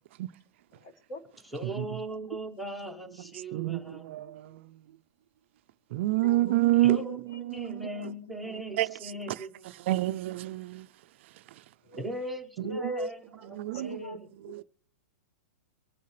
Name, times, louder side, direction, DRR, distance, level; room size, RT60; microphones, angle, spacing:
voice 1, 0.7-1.2 2.9-3.0 6.1-6.6 11.8-12.3 12.6-13.1 13.7-14.2, equal, 30° left, 1.8 m, -39 dB
voice 2, 1.5-4.1 6.7-9.7 12.0-13.2 13.5-14.3, right 1 dB, ahead, 0.9 m, -39 dB
voice 3, 3.5-4.6 5.9-7.0 7.4-7.9 8.8-8.9 9.9-10.9 13.6-14.0 14.5-14.6, right 16 dB, 50° right, 0.4 m, -27 dB
24.0 x 8.3 x 3.2 m
hypercardioid pair, 155°, 8 cm